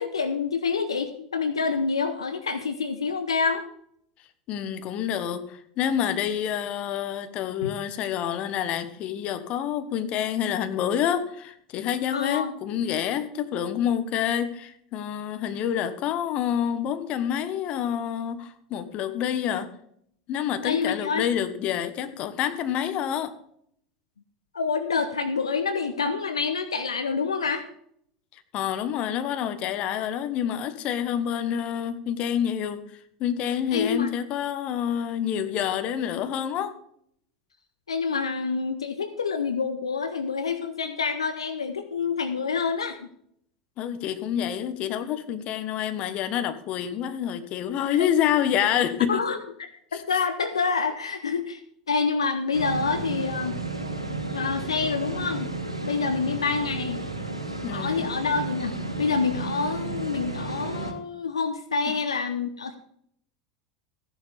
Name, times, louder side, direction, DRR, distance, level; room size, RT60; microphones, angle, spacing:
voice 1, 0.0-3.6 7.6-7.7 12.1-12.5 20.6-21.2 24.5-27.6 33.7-34.1 37.9-43.0 49.1-51.6 51.9-53.6 54.3-55.5 55.8-57.0 57.7-62.8, left 5 dB, 75° left, 0.9 m, -27 dB
voice 2, 4.5-19.7 20.3-23.3 28.3-32.8 33.2-36.7 43.8-49.2 49.9-50.0 57.6-58.1 61.8-61.9, left 9 dB, 40° left, 1.3 m, -28 dB
sound 1, 52.5-60.9, right 2 dB, 85° right, 1.5 m, -32 dB
15.0 x 10.5 x 3.5 m
figure-of-eight pair, 80°, 3 cm